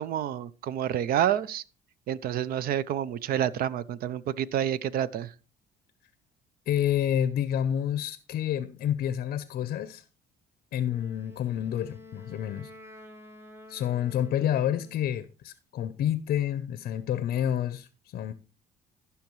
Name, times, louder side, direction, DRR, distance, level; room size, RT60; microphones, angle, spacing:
voice 1, 0.0-1.6 2.1-5.3, right 10 dB, 60° right, 0.5 m, -28 dB
voice 2, 6.7-10.0 10.7-12.7 13.7-18.3, left 10 dB, 60° left, 0.6 m, -29 dB
Wind instrument woodwind instrument, 10.9-15.1, left 2 dB, 15° right, 1.4 m, -49 dB
14.5 x 5.7 x 3.1 m
cardioid pair, 110°, 17 cm